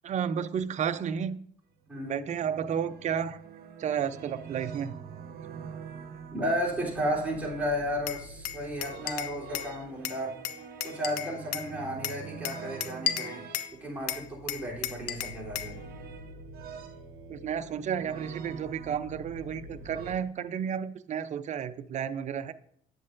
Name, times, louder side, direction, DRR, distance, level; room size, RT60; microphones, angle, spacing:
voice 1, 0.0-1.4 2.0-3.4 3.8-5.0 17.3-22.5, right 8 dB, 45° right, 0.5 m, -32 dB
voice 2, 1.9-2.2 6.3-10.3 10.8-13.5 13.8-15.8, equal, 10° right, 3.4 m, -33 dB
sound 1, 1.9-20.2, right 5 dB, 65° right, 1.0 m, -45 dB
Glass, 8.1-9.7 10.0-11.7 12.0-13.7 14.1-15.8, left 11 dB, 85° left, 0.6 m, -34 dB
8.5 x 7.9 x 2.6 m
cardioid pair, 110°, 17 cm